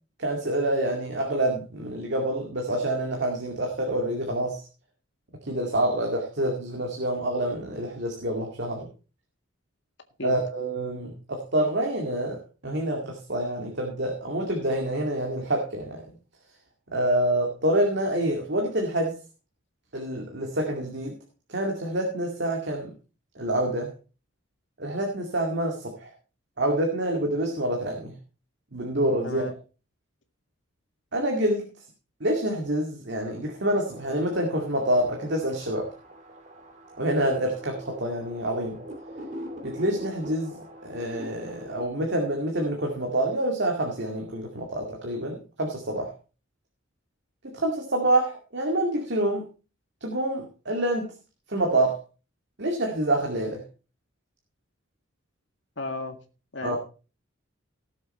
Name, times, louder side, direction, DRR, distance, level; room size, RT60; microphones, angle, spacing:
voice 1, 0.2-4.6 5.4-8.9 10.2-12.4 12.6-16.0 16.9-19.2 19.9-21.2 21.5-22.9 23.4-23.9 24.8-26.1 26.6-28.1 28.7-29.4 31.1-31.6 32.2-35.9 37.0-38.8 39.6-40.5 40.8-46.1 47.5-49.5 50.0-51.1 51.5-52.0 52.6-53.6 56.6-56.8, right 1 dB, 55° right, 1 dB, 2.3 m, -27 dB
voice 2, 29.2-29.6 55.8-56.2 56.5-56.8, left 2 dB, 60° left, 5 dB, 1.9 m, -34 dB
sound 1, 33.9-41.8, equal, 35° right, 2.7 m, -42 dB
17.5 x 7.1 x 4.3 m, 0.34 s
head